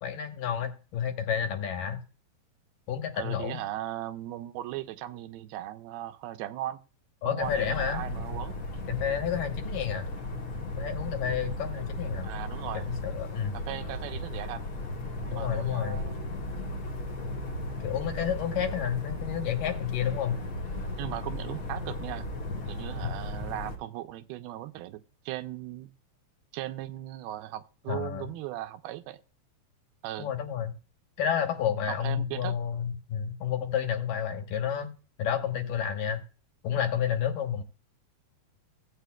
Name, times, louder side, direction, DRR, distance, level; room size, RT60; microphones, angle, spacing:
voice 1, 0.0-2.0 2.9-3.6 7.2-8.0 8.9-10.1 10.8-12.3 12.9-13.6 15.3-16.1 17.8-20.4 23.0-23.1 27.9-28.3 30.2-30.7 31.2-34.9 35.2-36.2 36.6-37.6, left 8 dB, 70° left, 2.6 m, -30 dB
voice 2, 3.1-6.8 7.3-8.6 12.2-12.9 13.5-14.6 15.3-16.2 21.0-22.3 22.7-25.9 26.5-29.2 30.0-30.3 31.9-32.6, right 14 dB, 85° right, 2.6 m, -38 dB
sound 1, 7.4-23.8, left 1 dB, 45° left, 2.0 m, -36 dB
16.5 x 8.3 x 2.3 m
omnidirectional pair, 4.3 m